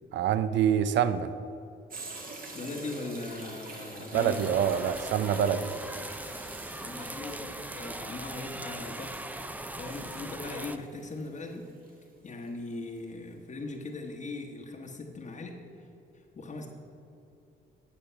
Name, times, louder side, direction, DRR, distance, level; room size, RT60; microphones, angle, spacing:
voice 1, 0.1-1.3 4.1-5.7, right 9 dB, 65° right, 13 dB, 0.5 m, -26 dB
sound 1, 1.9-12.5 13.0-13.1, right 2 dB, 45° right, 1.9 m, -46 dB
voice 2, 2.5-4.4 6.8-11.7 12.2-15.9 16.1-16.7, left 2 dB, 35° left, 1 dB, 1.1 m, -40 dB
sound 2, 4.1-10.8, right 1 dB, 10° right, 0.5 m, -40 dB
10.0 x 6.7 x 5.6 m, 2.8 s
cardioid pair, 90°, 20 cm